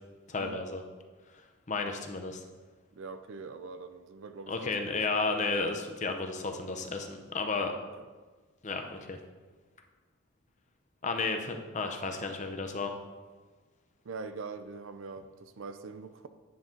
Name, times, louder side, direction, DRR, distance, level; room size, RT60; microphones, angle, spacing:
voice 1, 0.3-0.8 1.7-2.4 4.5-7.7 8.6-9.2 11.0-13.0, left 3 dB, 35° left, 5 dB, 0.6 m, -33 dB
voice 2, 2.9-5.5 7.8-8.1 14.0-16.3, right 4 dB, 60° right, 10 dB, 0.4 m, -43 dB
9.4 x 5.9 x 3.8 m, 1.4 s
head